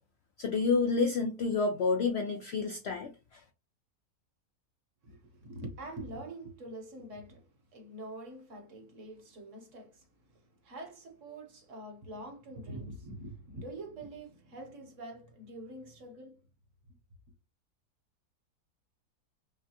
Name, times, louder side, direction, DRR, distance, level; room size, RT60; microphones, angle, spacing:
voice 1, 0.4-3.4, left 4 dB, 90° left, 0.5 m, -29 dB
voice 2, 5.0-10.1 10.3-16.4, right 1 dB, 55° right, 1.2 m, -45 dB
5.6 x 2.2 x 2.8 m
omnidirectional pair, 1.7 m